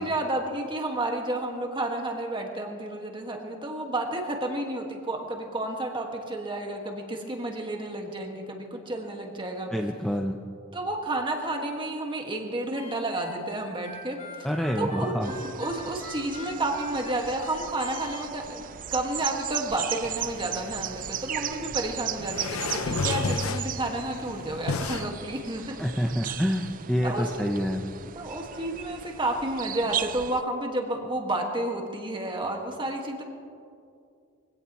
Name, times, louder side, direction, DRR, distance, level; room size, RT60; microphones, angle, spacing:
voice 1, 0.0-9.7 10.7-14.5 14.8-15.1 15.6-18.6 18.9-25.6 26.0-26.3 27.0-27.5 28.2-33.2, right 1 dB, 25° right, 2 dB, 1.8 m, -31 dB
voice 2, 9.7-10.4 14.4-15.3 25.8-27.8, equal, ahead, 1 dB, 0.6 m, -27 dB
Harmonica, 12.7-18.3, left 2 dB, 30° left, 2.0 m, -44 dB
sound 1, 15.2-30.4, right 11 dB, 40° right, 0.4 m, -36 dB
sound 2, 20.0-25.1, left 3 dB, 80° left, 0.8 m, -32 dB
23.0 x 17.0 x 3.1 m, 2.4 s
head